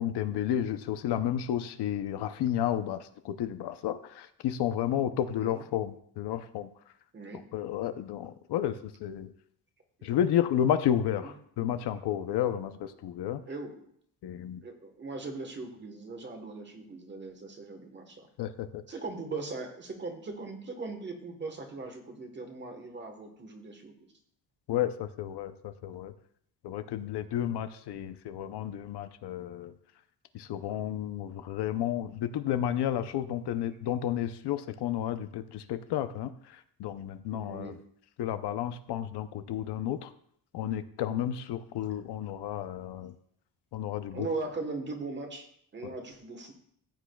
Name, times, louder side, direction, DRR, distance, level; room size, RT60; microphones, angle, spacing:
voice 1, 0.0-6.7 7.5-9.3 10.0-13.4 14.2-14.6 18.4-18.8 24.7-26.1 26.6-29.7 30.3-37.7 38.2-40.1 40.5-43.1 43.7-44.3 45.8-45.9, left 10 dB, 70° left, 10 dB, 0.7 m, -32 dB
voice 2, 7.1-7.5 10.0-10.1 11.2-11.3 13.5-13.8 14.6-18.3 18.9-24.1 26.7-26.9 27.3-27.5 37.3-37.8 44.1-46.5, right 3 dB, 25° right, 5 dB, 1.2 m, -39 dB
14.5 x 8.4 x 2.3 m, 0.67 s
cardioid pair, 180°, 42 cm